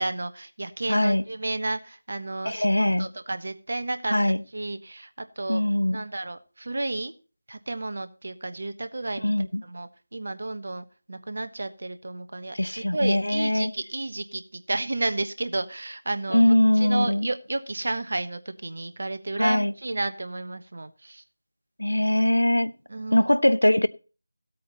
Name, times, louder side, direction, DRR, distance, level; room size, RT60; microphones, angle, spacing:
voice 1, 0.0-5.6 5.9-7.1 7.5-9.3 9.6-21.2 22.9-23.3, right 2 dB, 50° right, 1.2 m, -32 dB
voice 2, 0.9-1.2 2.5-3.1 4.1-4.4 5.5-6.0 9.2-9.6 12.5-13.7 16.3-17.3 19.4-19.7 21.8-22.7 23.1-23.9, left 1 dB, 80° left, 0.8 m, -21 dB
16.0 x 8.5 x 4.1 m
figure-of-eight pair, 165°, 0 cm